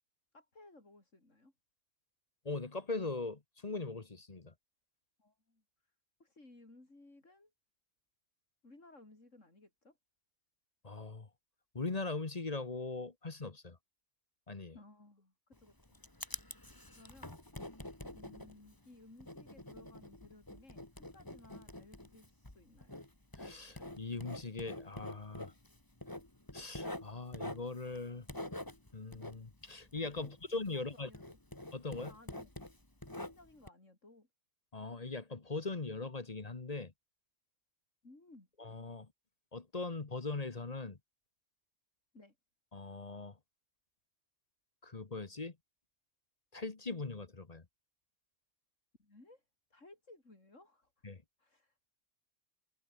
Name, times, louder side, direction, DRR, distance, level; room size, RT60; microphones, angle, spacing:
voice 1, 0.3-1.5 5.2-5.6 6.2-7.5 8.6-10.0 14.7-16.0 16.9-17.4 18.1-23.0 30.2-30.3 30.7-31.4 32.1-32.5 33.1-34.3 38.0-38.5 42.1-42.4 49.0-49.4 49.7-51.0 51.4-51.9, left 2 dB, 75° left, 5.5 m, -59 dB
voice 2, 2.4-4.5 10.8-11.3 11.7-13.8 14.5-14.7 23.4-25.5 26.5-28.3 28.9-31.1 31.7-32.1 34.7-36.9 38.6-39.1 39.5-41.0 42.7-43.4 44.8-45.6 46.5-47.6 51.0-51.2, left 3 dB, 30° left, 1.3 m, -40 dB
Writing, 15.5-30.9 31.1-33.7, left 1 dB, 15° left, 2.5 m, -47 dB
omnidirectional pair, 1.3 m